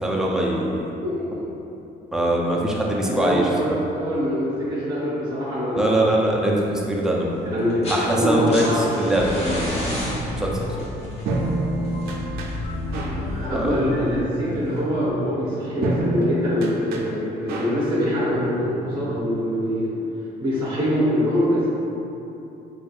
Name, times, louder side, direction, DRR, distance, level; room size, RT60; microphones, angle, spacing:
voice 1, 0.0-0.9 2.1-3.5 5.8-7.4 7.9-10.5 10.8-10.9 13.5-13.8, right 1 dB, 5° right, -3 dB, 0.4 m, -22 dB
voice 2, 1.0-1.4 2.9-6.2 7.4-8.7 9.0-9.1 13.2-19.9 20.4-21.7, equal, 25° right, -8 dB, 0.8 m, -24 dB
sound 1, 7.6-8.1 8.3-13.2 14.4-14.5, equal, 35° left, 1.0 m, -34 dB
sound 2, 9.1-14.2, left 2 dB, 60° left, 0.5 m, -32 dB
sound 3, 9.9-19.2, right 2 dB, 70° right, 0.4 m, -30 dB
4.4 x 2.5 x 2.3 m, 2.9 s
cardioid pair, 110°, 17 cm